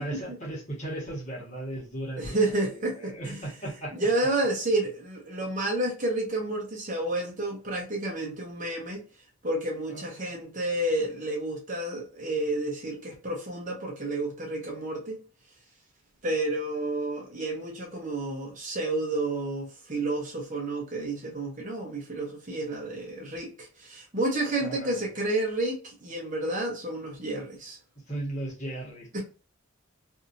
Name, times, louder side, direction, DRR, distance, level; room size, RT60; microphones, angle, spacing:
voice 1, 0.0-3.9 9.9-10.1 24.6-25.0 28.1-29.2, right 1 dB, 35° left, 1.4 m, -36 dB
voice 2, 2.2-3.4 3.9-9.0 9.4-15.2 16.2-27.8 29.1-29.2, right 2 dB, 35° right, 0.9 m, -30 dB
2.7 x 2.7 x 2.5 m
head